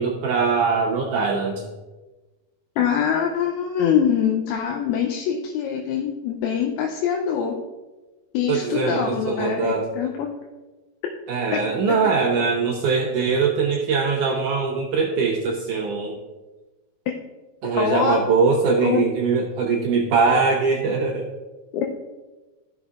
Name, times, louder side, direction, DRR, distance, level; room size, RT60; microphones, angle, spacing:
voice 1, 0.0-1.6 8.5-9.9 11.3-16.2 17.6-21.3, right 4 dB, 80° right, -1 dB, 1.9 m, -22 dB
voice 2, 2.8-7.6 8.3-10.3 11.5-11.6 17.7-18.2 18.8-19.1 21.7-21.9, left 8 dB, 85° left, 2 dB, 2.6 m, -23 dB
13.5 x 6.3 x 2.4 m, 1.2 s
omnidirectional pair, 4.4 m